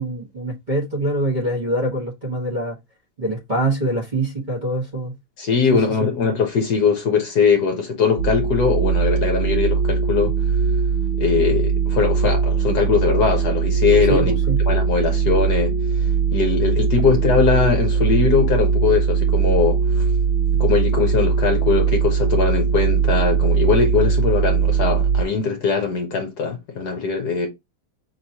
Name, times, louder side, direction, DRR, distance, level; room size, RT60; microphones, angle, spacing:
voice 1, 0.0-2.8 3.2-5.1 5.7-6.1 14.1-14.6, right 1 dB, 25° right, 1.5 m, -24 dB
voice 2, 5.4-10.3 11.2-14.3 14.6-15.7 16.0-20.1 20.5-27.5, left 5 dB, 60° left, 1.2 m, -20 dB
sound 1, 8.2-25.2, right 6 dB, 85° right, 0.6 m, -20 dB
5.4 x 3.0 x 2.8 m
omnidirectional pair, 2.1 m